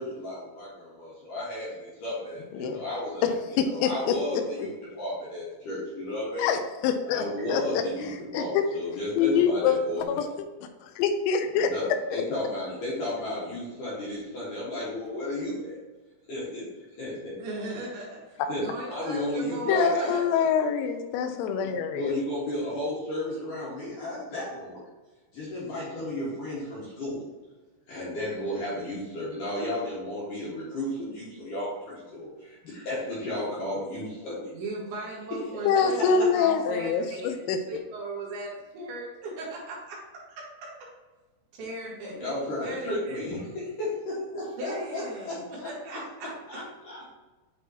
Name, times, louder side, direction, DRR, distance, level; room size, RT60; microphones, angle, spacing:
voice 1, 0.0-6.5 7.1-10.3 11.5-15.7 16.3-16.7 17.0-17.3 18.5-20.4 21.9-24.9 25.3-27.3 27.9-34.5 35.5-35.6 42.2-47.0, left 1 dB, 60° left, -8 dB, 2.4 m, -33 dB
voice 2, 3.2-4.2 6.4-8.6 9.2-9.8 10.1-10.3 10.8-11.7 12.1-12.2 19.7-22.1 35.7-37.6, left 6 dB, 90° left, 6 dB, 3.4 m, -25 dB
voice 3, 17.4-20.2 34.5-40.0 40.4-40.5 41.6-42.2 42.6-43.2 44.6-46.3, right 2 dB, 65° right, -5 dB, 3.9 m, -37 dB
9.7 x 4.5 x 2.9 m, 1.2 s
omnidirectional pair, 5.9 m